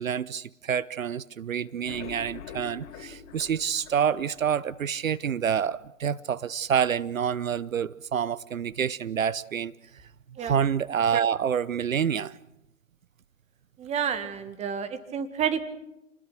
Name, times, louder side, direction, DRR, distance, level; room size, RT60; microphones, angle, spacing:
voice 1, 0.0-9.7 10.4-12.4, right 8 dB, 75° right, 0.8 m, -27 dB
sound 1, 1.7-4.9 5.3-5.4 5.7-5.8 6.2-6.3, left 7 dB, 35° left, 4.1 m, -44 dB
voice 2, 13.8-15.6, right 8 dB, 15° right, 1.9 m, -29 dB
29.0 x 20.5 x 6.3 m
figure-of-eight pair, 125°, 40 cm